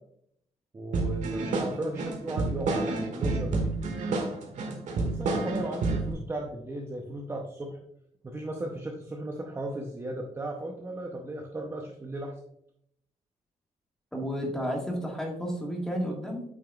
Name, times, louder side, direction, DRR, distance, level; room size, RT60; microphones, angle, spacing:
voice 1, 0.7-3.7 5.0-7.8 8.2-12.3, right 1 dB, 20° right, 1 dB, 0.7 m, -36 dB
sound 1, 0.9-6.1, right 3 dB, 65° right, 1.5 m, -29 dB
voice 2, 14.1-16.4, equal, 5° left, -1 dB, 1.7 m, -32 dB
8.7 x 6.2 x 2.4 m, 0.71 s
wide cardioid pair, 165°, 13 cm